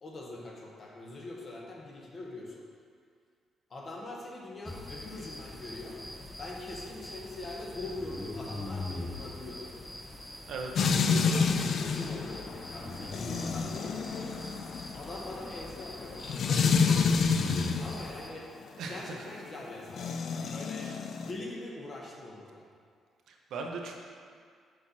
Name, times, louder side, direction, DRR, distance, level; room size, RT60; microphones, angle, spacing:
voice 1, 0.0-2.7 3.7-6.0 6.4-9.7 11.0-14.4 14.9-16.4 17.8-18.5 18.9-20.9 21.2-22.7, left 2 dB, 45° left, -2 dB, 1.2 m, -42 dB
sound 1, 4.6-18.3, left 2 dB, 15° left, 0.7 m, -42 dB
voice 2, 10.5-10.9 18.8-19.3 20.1-21.0 23.3-23.9, right 4 dB, 75° right, 1 dB, 0.7 m, -40 dB
sound 2, 10.8-18.0 19.9-21.3, left 5 dB, 60° left, 0.3 m, -28 dB
6.3 x 4.4 x 4.1 m, 2.1 s
cardioid pair, 90°, 0 cm